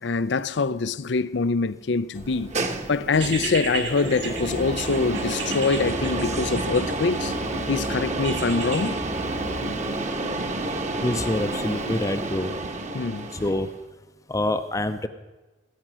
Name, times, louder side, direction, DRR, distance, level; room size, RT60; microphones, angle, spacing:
voice 1, 0.0-2.5 2.9-7.4 7.7-9.0 12.9-13.3, left 4 dB, 70° left, 0.5 m, -24 dB
sound 1, 2.2-13.8, right 2 dB, 40° right, 1.3 m, -30 dB
sound 2, 3.1-7.3 8.2-8.9, right 5 dB, 80° right, 3.7 m, -34 dB
sound 3, 4.0-10.0, right 1 dB, 15° right, 0.8 m, -38 dB
voice 2, 11.0-12.5 13.3-13.7 14.3-15.1, left 1 dB, 20° left, 0.6 m, -26 dB
19.0 x 10.0 x 6.2 m
head